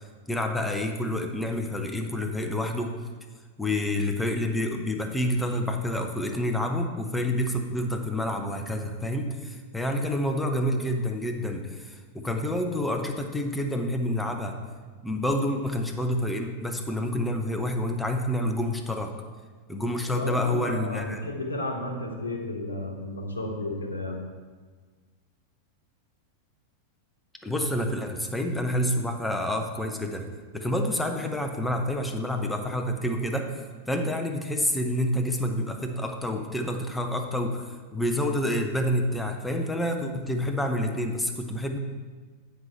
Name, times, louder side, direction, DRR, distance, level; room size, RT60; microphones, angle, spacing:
voice 1, 0.3-3.0 3.6-14.6 15.0-19.1 19.7-21.2 27.4-30.3 30.5-33.5 33.9-41.8, left 1 dB, 5° left, 4 dB, 0.8 m, -28 dB
voice 2, 20.0-24.2, left 1 dB, 80° left, 2 dB, 1.2 m, -33 dB
7.9 x 5.6 x 4.5 m, 1.4 s
figure-of-eight pair, 90°, 0 cm